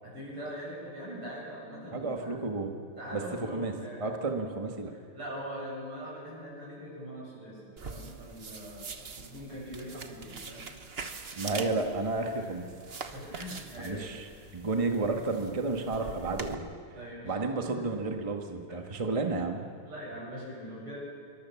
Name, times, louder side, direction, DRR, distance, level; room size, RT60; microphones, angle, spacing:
voice 1, 0.0-2.4 3.0-4.0 4.9-10.7 11.4-11.7 12.2-12.5 13.1-14.1 16.9-17.4 17.7-17.8 19.9-21.0, equal, 90° right, -4 dB, 8.7 m, -42 dB
voice 2, 1.9-2.8 3.1-3.2 3.5-4.9 11.3-12.7 13.8-16.7 17.2-19.6, right 3 dB, 15° right, 3 dB, 1.5 m, -32 dB
sound 1, 7.8-16.5, right 4 dB, 35° right, 1.1 m, -43 dB
25.0 x 23.5 x 7.2 m, 2.2 s
omnidirectional pair, 2.4 m